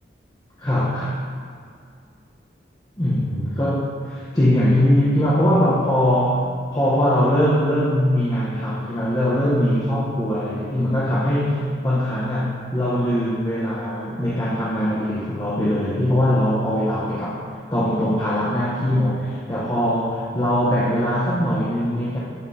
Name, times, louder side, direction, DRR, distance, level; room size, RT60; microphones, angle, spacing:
voice 1, 0.6-1.2 3.0-17.4 17.7-22.2, equal, 20° left, -8 dB, 1.0 m, -21 dB
11.0 x 5.8 x 2.8 m, 2.2 s
head